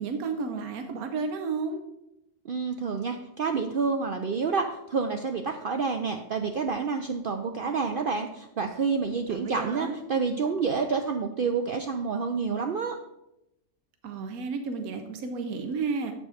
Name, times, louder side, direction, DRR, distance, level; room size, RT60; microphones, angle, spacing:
voice 1, 0.0-1.8 9.3-10.0 14.0-16.1, right 4 dB, 85° right, 6 dB, 1.2 m, -32 dB
voice 2, 2.4-13.0, right 5 dB, 70° right, 5 dB, 0.5 m, -28 dB
7.5 x 5.2 x 4.9 m, 0.86 s
omnidirectional pair, 1.5 m